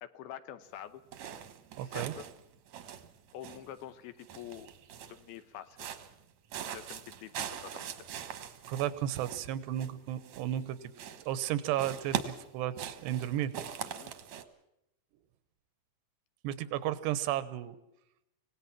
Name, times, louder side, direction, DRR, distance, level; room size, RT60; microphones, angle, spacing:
voice 1, 0.0-1.0 1.8-2.2 3.3-4.7 5.0-5.9 6.7-8.1 13.8-14.1, left 11 dB, 75° left, 12 dB, 2.7 m, -46 dB
sound 1, 1.1-2.4 2.7-3.8 4.2-5.3 5.7-6.2 6.5-10.7 10.9-11.5 11.8-14.4, right 9 dB, 60° right, 2.0 m, -41 dB
voice 2, 1.8-2.1 8.7-10.8 11.3-13.5 16.4-17.8, right 12 dB, 90° right, 14 dB, 3.2 m, -33 dB
25.5 x 18.0 x 6.1 m, 0.86 s
omnidirectional pair, 4.7 m